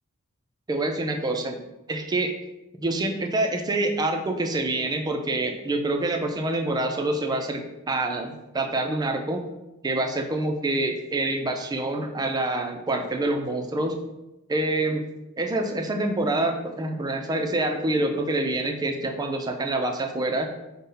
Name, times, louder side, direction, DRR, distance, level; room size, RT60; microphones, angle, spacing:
voice 1, 0.7-1.6 1.9-2.3 2.8-9.5 9.8-14.0 14.5-15.1 15.4-20.5, right 2 dB, 20° right, 3 dB, 0.4 m, -26 dB
5.3 x 2.1 x 3.8 m, 0.96 s
head